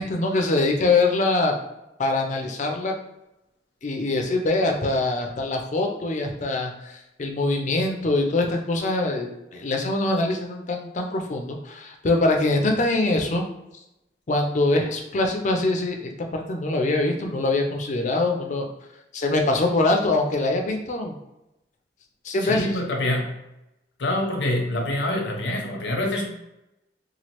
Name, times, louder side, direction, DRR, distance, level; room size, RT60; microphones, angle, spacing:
voice 1, 0.0-1.6 2.0-2.9 3.8-13.4 14.3-18.7 19.1-21.1 22.2-22.8, left 2 dB, 45° left, 3 dB, 0.4 m, -23 dB
voice 2, 22.4-23.3 24.0-26.3, left 1 dB, 85° left, 1 dB, 0.7 m, -26 dB
3.1 x 2.4 x 2.9 m, 0.91 s
head